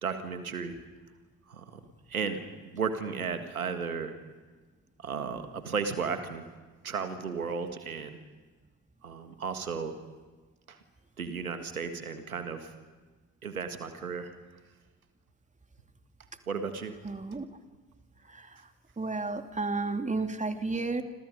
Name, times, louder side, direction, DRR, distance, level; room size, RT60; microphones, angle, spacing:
voice 1, 0.0-0.7 1.5-1.8 2.1-2.4 2.7-4.1 5.0-6.4 6.8-8.2 9.0-10.0 10.7-10.8 11.2-12.7 13.4-14.3 16.5-17.0, right 5 dB, 85° right, 9 dB, 1.8 m, -34 dB
voice 2, 17.0-17.5 18.3-18.5 19.0-21.0, right 3 dB, 15° right, 6 dB, 2.8 m, -32 dB
28.5 x 27.0 x 5.3 m, 1.3 s
figure-of-eight pair, 45°, 42 cm